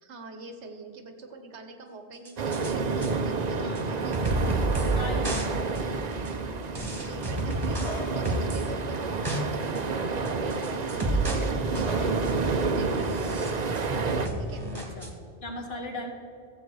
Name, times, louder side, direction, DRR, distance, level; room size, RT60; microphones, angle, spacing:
voice 1, 0.0-5.9 6.2-13.6 14.4-14.7, right 3 dB, 90° right, 6 dB, 1.4 m, -45 dB
sound 1, 2.3-2.7 3.0-3.1 3.8-3.9 4.1-5.0 5.2-5.5 5.8-5.9 6.3-6.4 6.8-8.7 9.0-9.4 9.8-9.9 10.3-11.5 11.8-12.4 13.0-13.9 14.3-15.1, right 2 dB, 20° right, 1.5 m, -31 dB
sound 2, 2.4-14.3, right 4 dB, 45° right, 0.7 m, -29 dB
voice 2, 3.6-4.0 5.0-5.4 6.7-7.0 14.7-15.1 15.4-16.1, left 1 dB, 65° left, 2 dB, 1.8 m, -37 dB
14.5 x 7.8 x 4.8 m, 2.7 s
omnidirectional pair, 1.1 m